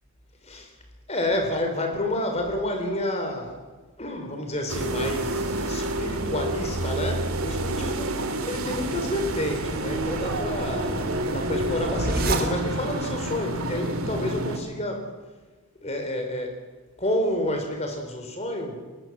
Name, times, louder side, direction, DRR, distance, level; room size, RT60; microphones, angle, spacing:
voice 1, 1.1-3.6 4.0-15.1 15.8-16.6 17.0-18.8, left 1 dB, 30° left, 4 dB, 4.1 m, -29 dB
sound 1, 4.7-14.6, right 2 dB, 75° right, 2.3 m, -29 dB
sound 2, 8.6-13.0, right 1 dB, 40° right, 2.5 m, -30 dB
22.5 x 20.5 x 7.5 m, 1.3 s
head